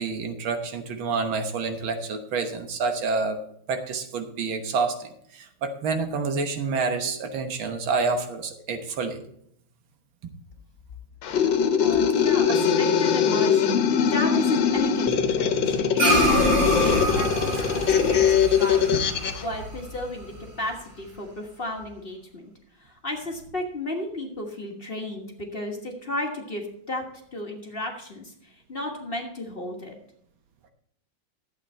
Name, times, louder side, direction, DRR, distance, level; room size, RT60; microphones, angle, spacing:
voice 1, 0.0-3.4 3.7-9.2 12.5-12.6, right 4 dB, 90° right, 6 dB, 2.0 m, -28 dB
sound 1, 11.2-19.4, left 7 dB, 70° left, 1.5 m, -22 dB
voice 2, 11.8-18.8 19.4-22.5 22.8-27.0 27.3-29.9, left 1 dB, 30° left, 1 dB, 1.4 m, -34 dB
sound 2, 16.0-20.6, right 1 dB, 55° right, 5.7 m, -26 dB
11.5 x 8.1 x 4.3 m, 0.68 s
omnidirectional pair, 2.1 m